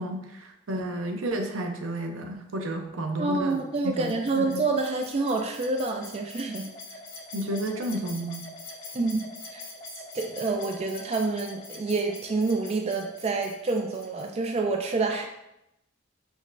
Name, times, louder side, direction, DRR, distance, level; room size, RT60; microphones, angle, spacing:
voice 1, 0.0-3.6 3.8-4.6 7.3-8.5, right 1 dB, 80° right, 4 dB, 0.6 m, -32 dB
voice 2, 3.2-6.7 8.9-9.6 10.1-15.2, right 3 dB, 30° right, 3 dB, 0.3 m, -28 dB
sound 1, 3.5-14.5, left 3 dB, 70° left, 1.0 m, -44 dB
5.1 x 3.1 x 2.6 m, 0.86 s
head